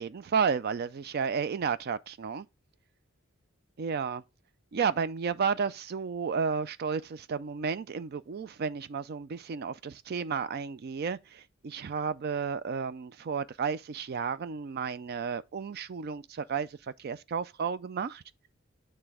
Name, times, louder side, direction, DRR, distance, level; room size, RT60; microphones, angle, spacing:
voice 1, 0.0-2.5 3.8-4.2 4.7-18.2, right 6 dB, 50° right, 0.4 m, -32 dB
8.9 x 3.3 x 4.8 m
head